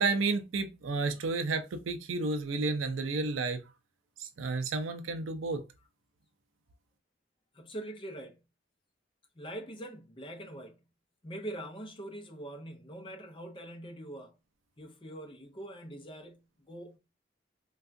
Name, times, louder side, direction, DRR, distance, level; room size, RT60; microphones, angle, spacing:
voice 1, 0.0-3.6 4.2-5.6, right 3 dB, 85° right, 0.4 m, -31 dB
voice 2, 7.5-8.4 9.4-10.9 11.2-14.4 14.8-17.0, right 1 dB, 25° left, 0.6 m, -43 dB
3.4 x 2.3 x 2.5 m
head